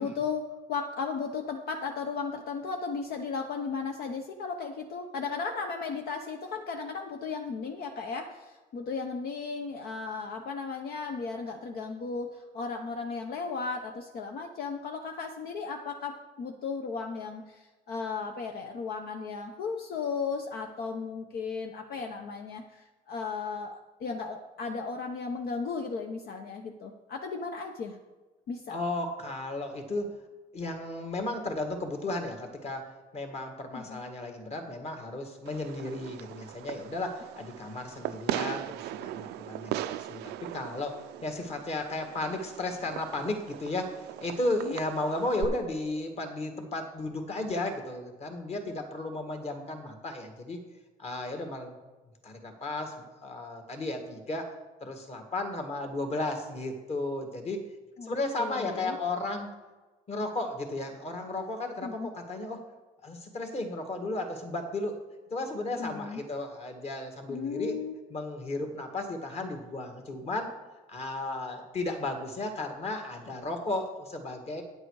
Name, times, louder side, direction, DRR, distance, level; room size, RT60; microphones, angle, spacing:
voice 1, 0.0-28.0 28.5-28.7 33.7-34.0 44.6-44.8 58.0-59.0 61.8-62.1 65.8-66.2 67.3-67.9, left 5 dB, 65° left, 4 dB, 0.9 m, -35 dB
voice 2, 28.7-30.1 30.5-50.6 51.0-51.7 52.2-52.9 53.2-54.5 54.8-57.6 58.0-59.5 60.1-62.6 63.0-65.0 65.3-67.8 68.1-70.5 70.9-74.6, left 2 dB, 40° left, 5 dB, 1.9 m, -34 dB
Fireworks, 35.5-45.5, right 13 dB, 80° right, 0.4 m, -39 dB
9.8 x 7.7 x 4.8 m, 1.2 s
cardioid pair, 110°, 17 cm